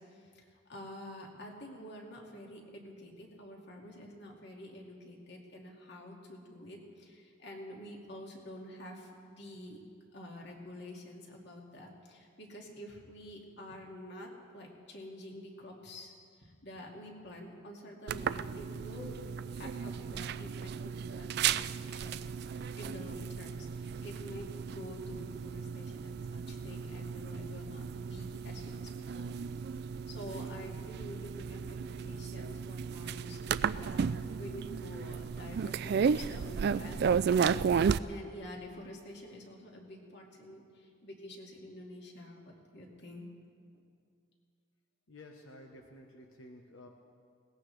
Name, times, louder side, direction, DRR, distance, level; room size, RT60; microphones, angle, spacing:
voice 1, 0.0-9.8 10.1-16.1 16.4-29.7 30.1-37.1 38.1-43.3, left 1 dB, 55° left, 0 dB, 2.3 m, -48 dB
sound 1, 18.1-38.0, right 6 dB, 55° right, 0.3 m, -34 dB
voice 2, 45.1-46.9, left 1 dB, 90° left, 1 dB, 1.2 m, -52 dB
21.0 x 18.5 x 3.3 m, 2.2 s
head